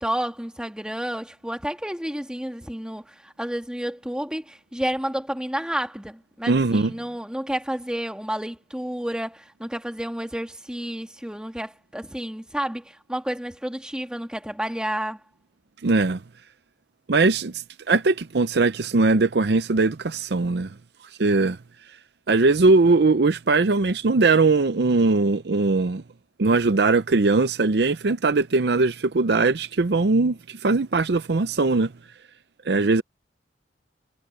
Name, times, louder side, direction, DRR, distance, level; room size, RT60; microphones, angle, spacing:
voice 1, 0.0-15.2, right 1 dB, 5° right, 1.9 m, -30 dB
voice 2, 6.5-6.9 15.8-16.2 17.1-20.7 21.2-21.6 22.3-26.0 26.4-31.9 32.7-33.0, right 3 dB, 60° right, 0.6 m, -20 dB
head